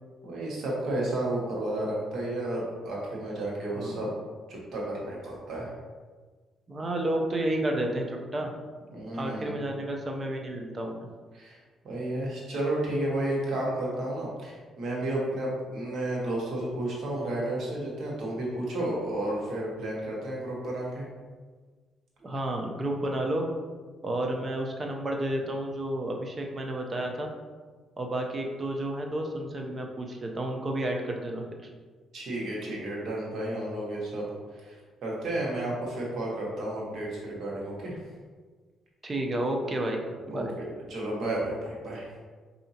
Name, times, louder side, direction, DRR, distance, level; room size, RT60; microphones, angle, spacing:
voice 1, 0.2-4.1 4.5-5.7 8.9-9.6 11.3-11.6 11.8-21.1 32.1-34.3 34.5-38.0 40.3-42.1, right 1 dB, 65° right, -4 dB, 1.3 m, -32 dB
voice 2, 6.7-8.5 9.1-11.1 22.2-23.5 24.0-27.3 28.0-31.7 39.0-40.5, right 1 dB, 30° right, 2 dB, 0.6 m, -31 dB
4.7 x 2.8 x 2.8 m, 1.4 s
cardioid pair, 90°, 0 cm